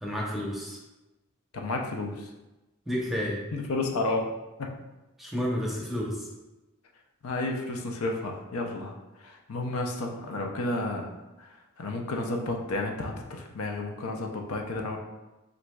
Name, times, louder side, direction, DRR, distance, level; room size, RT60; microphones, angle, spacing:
voice 1, 0.0-0.8 2.9-3.4 5.2-6.3, equal, ahead, -4 dB, 0.7 m, -30 dB
voice 2, 1.5-2.3 3.5-4.3 4.6-4.7 7.2-8.9 9.2-11.1 11.8-15.0, left 2 dB, 75° left, 2 dB, 0.6 m, -31 dB
7.6 x 2.6 x 2.2 m, 1.0 s
head